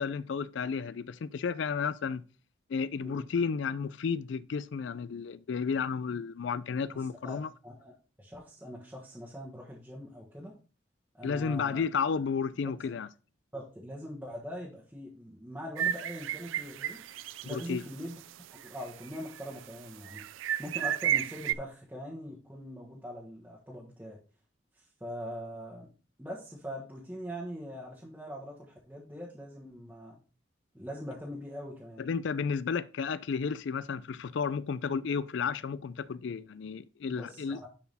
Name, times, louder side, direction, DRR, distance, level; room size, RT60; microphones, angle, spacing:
voice 1, 0.0-2.2 2.7-7.5 11.2-13.1 17.4-17.8 32.0-37.6, left 5 dB, 75° left, 0.4 m, -32 dB
voice 2, 6.9-10.5 11.1-11.8 13.5-17.0 17.4-18.2 18.5-20.3 20.6-24.2 24.8-25.9 26.2-30.2 30.7-32.1 37.0-37.7, equal, 10° right, 1.3 m, -42 dB
sound 1, 15.8-17.7 18.0-18.1 18.6-19.4 20.0-21.5, right 10 dB, 90° right, 0.4 m, -32 dB
10.5 x 4.6 x 3.5 m
head